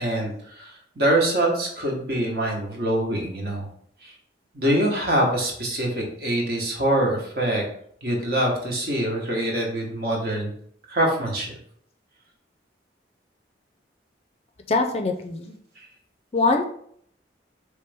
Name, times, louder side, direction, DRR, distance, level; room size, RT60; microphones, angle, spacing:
voice 1, 0.0-3.7 4.0-4.1 4.5-7.6 8.0-10.5 10.9-11.6, right 1 dB, 55° right, -1 dB, 1.2 m, -24 dB
voice 2, 14.7-15.6 16.3-16.6, left 3 dB, 35° left, 5 dB, 0.4 m, -23 dB
4.5 x 3.3 x 3.4 m, 0.65 s
head